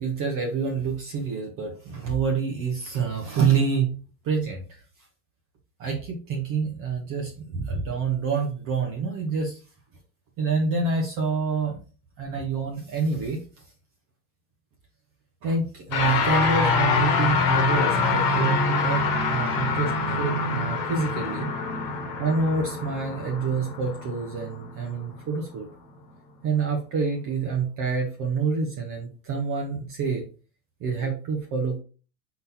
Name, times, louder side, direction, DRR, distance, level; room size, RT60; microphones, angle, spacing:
voice 1, 0.0-4.0 4.2-4.8 5.8-9.6 10.4-11.8 12.2-13.4 15.4-19.0 19.3-21.5 22.2-25.6 26.4-30.2 30.8-31.8, right 5 dB, 40° right, 1 dB, 1.0 m, -27 dB
sound 1, 15.9-25.4, left 4 dB, 40° left, 1.3 m, -25 dB
4.0 x 3.9 x 2.8 m, 0.37 s
hypercardioid pair, 100°, 49 cm